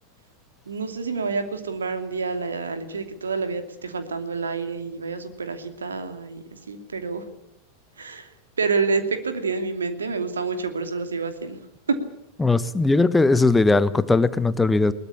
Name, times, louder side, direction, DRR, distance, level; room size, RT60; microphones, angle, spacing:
voice 1, 0.7-7.2 8.0-8.3 8.6-11.6 11.9-12.1, right 4 dB, 70° right, 8 dB, 2.7 m, -28 dB
voice 2, 12.4-14.9, left 3 dB, 10° left, 14 dB, 1.0 m, -19 dB
22.0 x 19.5 x 8.4 m, 0.76 s
figure-of-eight pair, 90°, 0 cm